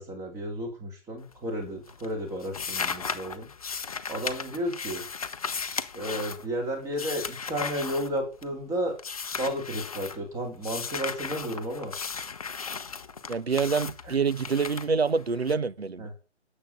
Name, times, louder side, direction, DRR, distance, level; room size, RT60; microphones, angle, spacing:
voice 1, 0.0-3.5 4.1-5.0 5.9-8.9 9.4-11.9 14.0-14.1 16.0-16.1, equal, 10° right, 3.3 m, -32 dB
sound 1, 1.2-1.6 1.9-8.6 9.0-10.2 10.6-15.5, left 5 dB, 30° left, 0.8 m, -36 dB
voice 2, 13.3-16.1, right 5 dB, 60° right, 1.3 m, -26 dB
12.5 x 7.9 x 9.5 m
figure-of-eight pair, 145°, 36 cm